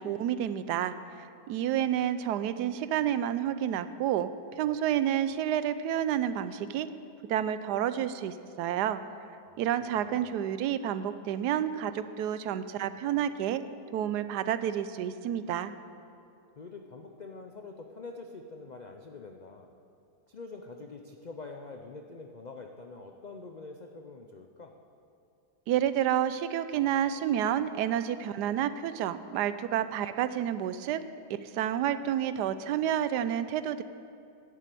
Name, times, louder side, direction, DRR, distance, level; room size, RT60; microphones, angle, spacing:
voice 1, 0.0-4.3 4.6-6.9 7.3-9.0 9.6-13.6 13.9-15.7 25.7-31.0 31.4-33.8, right 10 dB, 90° right, 13 dB, 1.2 m, -29 dB
voice 2, 9.9-10.4 16.6-19.7 20.3-24.8, left 3 dB, 80° left, 4 dB, 0.4 m, -45 dB
11.0 x 7.7 x 8.3 m, 2.6 s
omnidirectional pair, 1.7 m